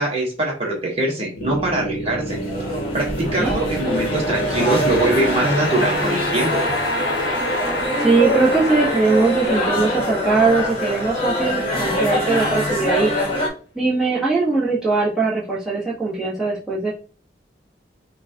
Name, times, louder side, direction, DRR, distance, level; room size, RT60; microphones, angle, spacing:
voice 1, 0.0-2.4 2.9-6.6, right 1 dB, 30° right, -2 dB, 1.2 m, -22 dB
sound 1, 1.4-12.6, left 1 dB, 75° left, 0.9 m, -28 dB
sound 2, 2.3-13.5, left 1 dB, 30° left, 1.2 m, -24 dB
voice 2, 8.0-13.1 13.7-16.9, right 3 dB, 5° right, -8 dB, 1.3 m, -20 dB
5.8 x 2.4 x 2.9 m, 0.38 s
head